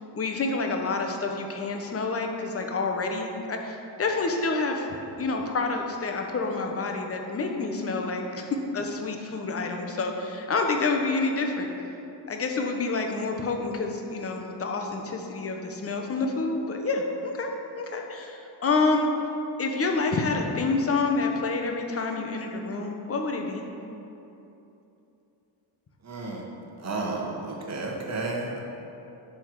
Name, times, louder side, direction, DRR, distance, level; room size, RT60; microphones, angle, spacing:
voice 1, 0.1-4.9 5.2-8.5 8.7-11.7 12.3-17.5 17.8-19.1 19.6-23.6, left 3 dB, 30° left, 3 dB, 0.9 m, -28 dB
voice 2, 26.1-26.4 26.8-28.6, right 3 dB, 30° right, -1 dB, 1.4 m, -32 dB
11.0 x 3.7 x 4.7 m, 2.9 s
cardioid pair, 100°, 50 cm